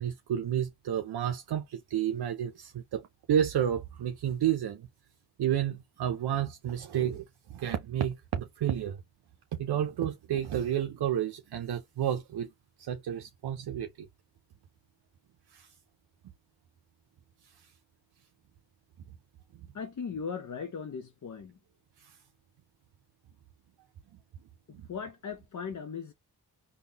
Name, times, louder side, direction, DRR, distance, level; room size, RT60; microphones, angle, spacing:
voice 1, 0.0-3.0 3.3-4.8 5.4-7.3 7.5-9.0 9.5-12.5 12.8-13.9 15.5-15.7, right 10 dB, 75° right, 0.6 m, -30 dB
voice 2, 19.7-21.6 24.7-26.1, left 6 dB, 50° left, 0.6 m, -38 dB
3.6 x 2.2 x 2.8 m
cardioid pair, 45°, 40 cm